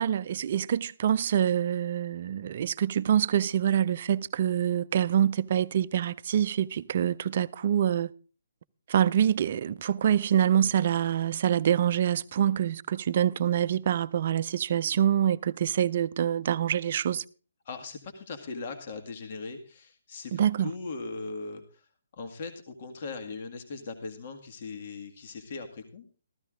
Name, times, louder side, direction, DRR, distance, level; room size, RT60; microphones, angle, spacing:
voice 1, 0.0-8.1 8.9-17.2 20.3-20.7, right 10 dB, 45° right, 0.5 m, -26 dB
voice 2, 17.7-26.1, left 4 dB, 45° left, 1.8 m, -39 dB
14.5 x 14.0 x 3.7 m
figure-of-eight pair, 135°, 0 cm